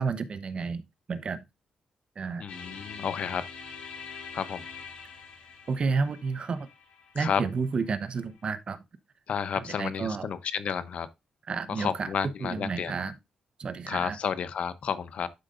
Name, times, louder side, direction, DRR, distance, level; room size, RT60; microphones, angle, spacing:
voice 1, 0.0-1.4 2.2-2.4 5.7-6.7 7.1-8.8 9.5-10.3 11.5-12.1 12.4-13.2 13.6-14.2, right 4 dB, 50° right, 0.9 m, -31 dB
voice 2, 2.4-3.4 4.3-4.6 7.2-7.4 9.3-11.1 11.7-12.9 13.9-15.3, left 7 dB, 70° left, 0.8 m, -31 dB
sound 1, 2.5-8.4, left 6 dB, 90° left, 2.6 m, -45 dB
11.5 x 4.9 x 2.6 m
cardioid pair, 85°, 2 cm